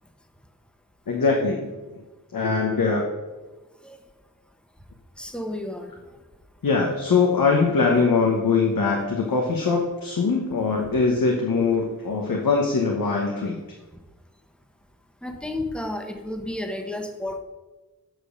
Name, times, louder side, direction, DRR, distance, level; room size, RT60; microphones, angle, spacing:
voice 1, 1.1-1.7 2.3-3.1 6.6-13.6, left 4 dB, 80° left, 0 dB, 1.1 m, -22 dB
voice 2, 5.2-5.9 15.2-17.4, left 1 dB, 5° left, 5 dB, 1.0 m, -32 dB
7.7 x 5.0 x 6.4 m, 1.2 s
wide cardioid pair, 85°, 33 cm